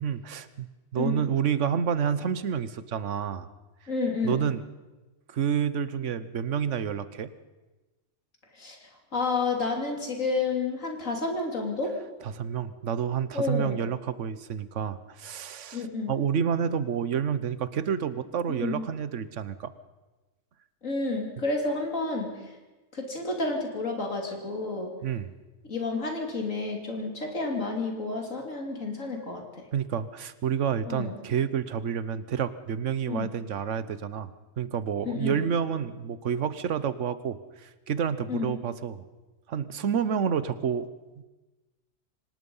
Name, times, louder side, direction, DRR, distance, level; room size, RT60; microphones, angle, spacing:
voice 1, 0.0-3.5 4.2-4.6 5.3-7.3 12.2-19.7 25.0-25.4 29.7-39.0 39.5-40.9, right 8 dB, 65° right, 14 dB, 1.2 m, -29 dB
voice 2, 3.9-4.5 8.5-12.0 13.3-13.8 15.7-16.1 18.5-18.8 20.8-22.5 22.9-24.9 25.7-29.7 30.9-31.1 33.1-33.3 35.0-35.5 38.3-38.6, left 3 dB, 75° left, 2 dB, 3.5 m, -30 dB
25.5 x 18.5 x 5.5 m, 1.2 s
omnidirectional pair, 1.4 m